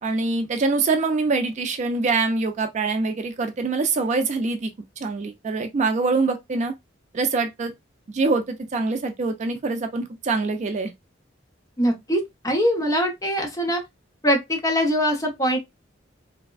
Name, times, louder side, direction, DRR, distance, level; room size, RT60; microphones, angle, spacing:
voice 1, 0.0-4.7 5.0-6.7 7.1-7.7 8.1-10.9, right 3 dB, 40° right, 0.4 m, -24 dB
voice 2, 11.8-13.8 14.2-15.6, equal, 20° left, 0.7 m, -22 dB
3.3 x 2.1 x 2.3 m
head